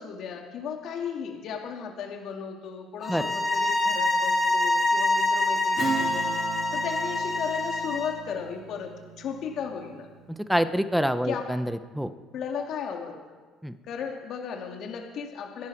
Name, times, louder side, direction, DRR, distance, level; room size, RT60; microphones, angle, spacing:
voice 1, 0.0-6.3 6.7-8.9 9.2-10.1 11.2-11.4 12.3-13.2 13.9-15.7, left 6 dB, 60° left, 1 dB, 2.2 m, -35 dB
sound 1, 3.0-8.2, left 2 dB, 20° left, 3.3 m, -25 dB
Strum, 5.8-10.7, right 5 dB, 40° right, 3.1 m, -37 dB
voice 2, 10.3-12.1 13.6-13.7, equal, ahead, 11 dB, 1.1 m, -26 dB
26.5 x 11.0 x 4.7 m, 1.4 s
hypercardioid pair, 70°, 0 cm